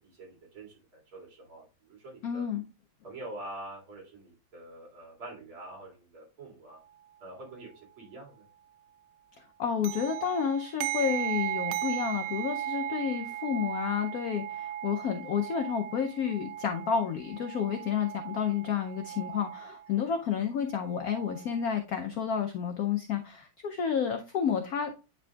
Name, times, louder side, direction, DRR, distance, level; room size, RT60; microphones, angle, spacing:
voice 1, 0.0-2.5 3.0-6.8 7.2-8.5, right 2 dB, 75° right, 3.1 m, -46 dB
voice 2, 2.2-2.6 9.6-24.9, left 7 dB, 80° left, 0.8 m, -30 dB
sound 1, 9.8-19.9 20.8-21.7, right 12 dB, 90° right, 1.5 m, -37 dB
9.5 x 5.0 x 2.3 m
omnidirectional pair, 2.3 m